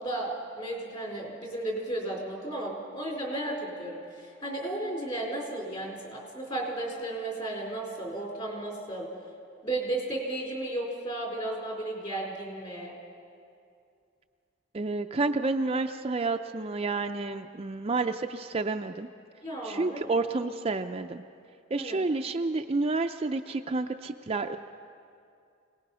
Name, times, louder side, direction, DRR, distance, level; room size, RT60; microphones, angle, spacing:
voice 1, 0.0-9.1 9.6-12.9 19.4-20.1 21.8-22.0, right 1 dB, 30° left, -1 dB, 4.4 m, -34 dB
voice 2, 14.7-19.1 19.6-21.2 21.7-24.6, right 3 dB, 30° right, 6 dB, 0.5 m, -30 dB
26.0 x 19.0 x 5.6 m, 2.4 s
head